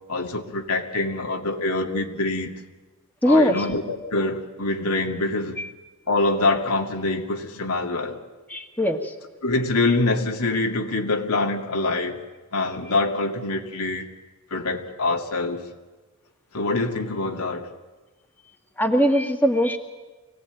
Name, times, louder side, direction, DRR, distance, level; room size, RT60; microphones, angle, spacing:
voice 1, 0.1-2.5 3.2-5.6 6.1-8.2 9.4-12.2 12.5-14.1 14.5-15.6 16.5-17.7, left 2 dB, 90° left, 2.3 m, -25 dB
voice 2, 3.2-3.6 5.6-5.7 8.5-9.0 18.8-19.8, equal, 10° left, 1.6 m, -20 dB
25.0 x 18.0 x 9.0 m
head